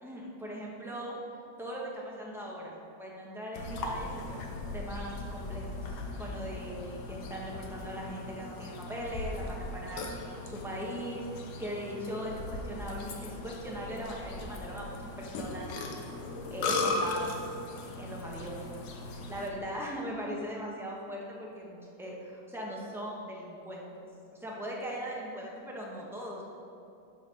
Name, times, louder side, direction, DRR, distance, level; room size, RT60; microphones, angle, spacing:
voice 1, 0.0-1.1 1.6-5.6 6.2-15.7 16.5-17.5 18.0-18.6 19.3-23.9 24.3-26.4, equal, ahead, -4 dB, 0.6 m, -39 dB
Burping eructation, 3.5-19.5, left 2 dB, 85° left, 1.7 m, -38 dB
12.5 x 4.3 x 5.1 m, 2.6 s
omnidirectional pair, 2.3 m